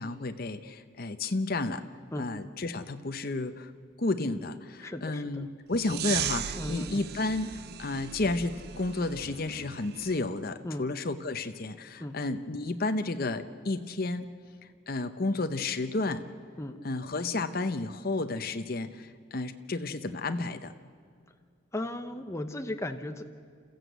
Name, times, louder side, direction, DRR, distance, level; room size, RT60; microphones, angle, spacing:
voice 1, 0.0-1.8 2.2-3.7 4.0-7.5 7.8-14.3 14.9-16.2 16.8-20.7, left 2 dB, 45° left, 8 dB, 0.8 m, -32 dB
voice 2, 4.8-5.4 6.6-7.0 10.6-10.9 12.0-12.2 16.6-16.8 21.7-23.2, left 1 dB, 15° left, 6 dB, 0.7 m, -36 dB
sound 1, 5.7-10.2, right 10 dB, 50° right, 0.5 m, -37 dB
28.0 x 14.5 x 8.1 m, 2.2 s
head